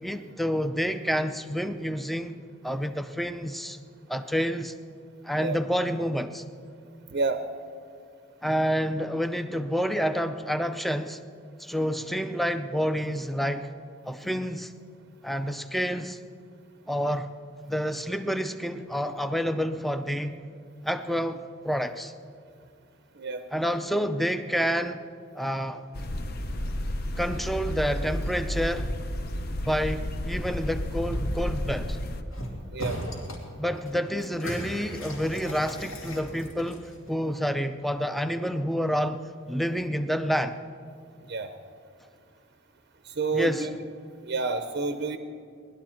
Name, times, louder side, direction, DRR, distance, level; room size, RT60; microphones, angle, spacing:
voice 1, 0.0-3.8 4.1-4.7 5.2-6.4 8.4-11.2 11.6-13.7 14.1-14.7 15.2-16.2 16.9-17.3 17.6-20.4 20.8-22.1 23.5-25.0 25.3-25.8 27.2-28.9 29.6-32.0 33.6-40.5 43.3-43.7, equal, ahead, 10 dB, 0.4 m, -28 dB
voice 2, 7.1-7.4 23.2-23.4 32.7-33.0 41.3-41.5 43.0-43.8 44.2-45.2, right 4 dB, 50° right, 8 dB, 0.6 m, -29 dB
sound 1, 25.9-32.2, left 1 dB, 45° left, 0.7 m, -31 dB
sound 2, 32.3-32.5 32.8-33.4 33.7-37.1, equal, 80° left, 2.6 m, -37 dB
19.0 x 12.0 x 4.4 m, 2.3 s
head